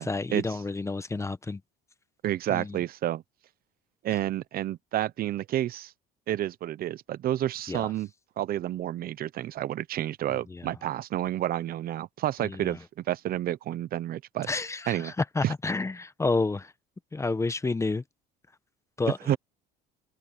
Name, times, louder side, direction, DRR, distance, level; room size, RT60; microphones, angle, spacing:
voice 1, 0.0-1.6 2.5-2.8 7.7-7.9 10.3-10.7 12.4-12.8 14.5-16.7 17.1-18.0 19.0-19.4, left 3 dB, 15° left, 1.2 m, -30 dB
voice 2, 2.2-3.2 4.0-5.9 6.3-8.1 8.4-14.5 14.9-15.1 15.4-15.5 19.3-19.4, right 12 dB, 50° right, 1.0 m, -30 dB
supercardioid pair, 100°, 19 cm